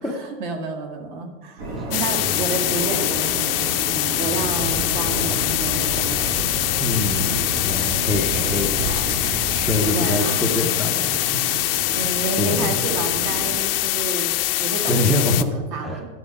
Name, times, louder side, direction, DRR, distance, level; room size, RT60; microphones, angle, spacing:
voice 1, 0.0-6.5 8.3-9.3 9.6-10.7 11.9-16.1, right 4 dB, 55° right, 4 dB, 2.0 m, -31 dB
sound 1, 1.6-13.6, right 2 dB, 80° right, 4.0 m, -32 dB
sound 2, 1.9-15.4, left 17 dB, 75° left, 0.7 m, -23 dB
sound 3, 4.4-9.8, right 1 dB, 30° right, 1.8 m, -32 dB
voice 2, 6.8-8.9 9.7-11.1 11.5-11.8 12.4-12.8 14.9-15.5 15.8-16.0, left 1 dB, ahead, 3 dB, 0.5 m, -25 dB
12.0 x 7.8 x 5.2 m, 1.3 s
supercardioid pair, 170°, 29 cm